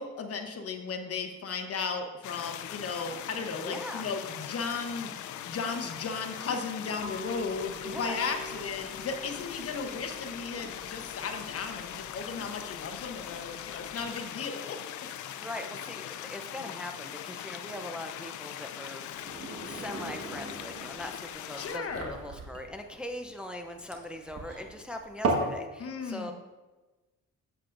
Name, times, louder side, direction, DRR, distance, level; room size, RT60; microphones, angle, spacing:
voice 1, 0.0-14.8 21.6-22.1 25.8-26.3, left 5 dB, 50° left, 5 dB, 0.9 m, -35 dB
sound 1, 2.2-21.8, left 11 dB, 75° left, 0.5 m, -41 dB
voice 2, 3.6-4.1 7.9-8.2 15.3-19.1 19.7-26.3, left 1 dB, 5° right, 4 dB, 0.6 m, -41 dB
sound 2, 7.0-14.0, equal, 20° right, 1.2 m, -47 dB
sound 3, 19.1-25.6, right 2 dB, 50° right, 1.5 m, -36 dB
8.1 x 7.7 x 2.6 m, 1.2 s
cardioid pair, 90°, 30 cm